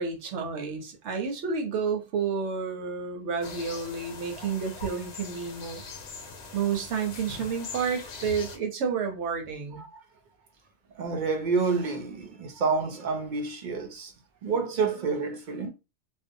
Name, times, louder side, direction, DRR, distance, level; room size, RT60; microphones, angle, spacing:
voice 1, 0.0-5.8 6.5-9.8, right 6 dB, 80° right, 1.0 m, -30 dB
sound 1, 3.4-8.6, left 4 dB, 90° left, 1.0 m, -42 dB
voice 2, 10.9-14.1 14.4-15.7, right 4 dB, 55° right, 0.6 m, -29 dB
2.6 x 2.0 x 2.6 m
omnidirectional pair, 1.2 m